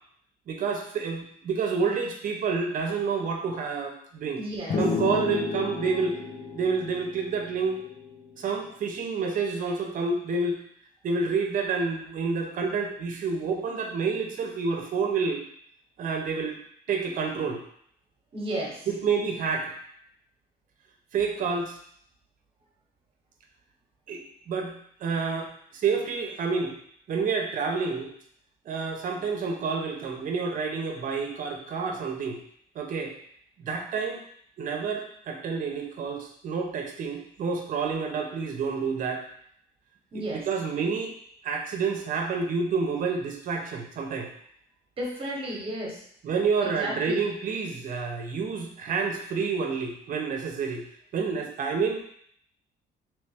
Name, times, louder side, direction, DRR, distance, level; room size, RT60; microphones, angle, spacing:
voice 1, 0.5-4.4 4.8-6.2 6.5-7.8 8.4-10.6 11.0-15.4 16.0-16.6 16.9-17.6 18.9-19.7 21.1-21.8 24.1-26.7 27.1-28.1 28.7-32.4 32.8-33.2 33.6-34.2 34.6-39.2 40.1-41.1 41.4-44.3 46.2-50.8 51.1-52.0, right 5 dB, 50° right, 3 dB, 0.7 m, -29 dB
voice 2, 4.4-4.8 18.3-18.8 40.1-40.4 45.0-46.0 46.6-47.2, right 1 dB, 30° right, -2 dB, 1.0 m, -33 dB
sound 1, 4.7-8.3, left 4 dB, 35° left, 0.4 m, -31 dB
3.2 x 3.1 x 3.4 m, 0.65 s
cardioid pair, 155°, 18 cm